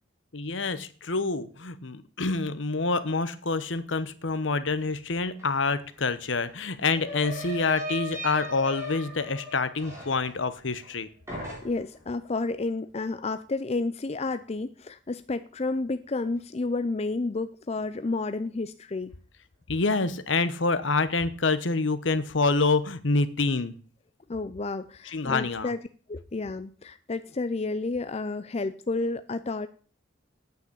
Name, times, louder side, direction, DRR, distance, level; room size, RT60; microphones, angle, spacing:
voice 1, 0.3-11.1 19.7-23.8 25.1-25.7, left 3 dB, 70° left, 13 dB, 1.1 m, -27 dB
sound 1, 5.4-5.5 5.7-11.0 11.3-12.0, equal, 15° right, 4.5 m, -38 dB
voice 2, 11.6-19.1 24.3-25.8 26.1-29.7, left 3 dB, 35° left, 12 dB, 0.5 m, -31 dB
9.3 x 8.0 x 8.4 m, 0.41 s
head